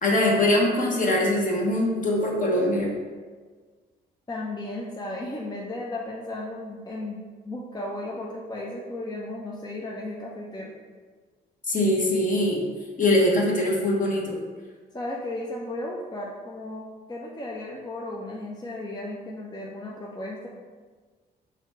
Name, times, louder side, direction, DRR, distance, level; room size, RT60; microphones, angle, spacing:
voice 1, 0.0-2.9 11.7-12.6 13.0-14.4, left 1 dB, 40° left, -2 dB, 1.2 m, -22 dB
voice 2, 4.3-10.7 14.9-20.5, left 1 dB, 20° left, -3 dB, 0.6 m, -35 dB
4.0 x 2.4 x 4.2 m, 1.5 s
supercardioid pair, 55°, 20 cm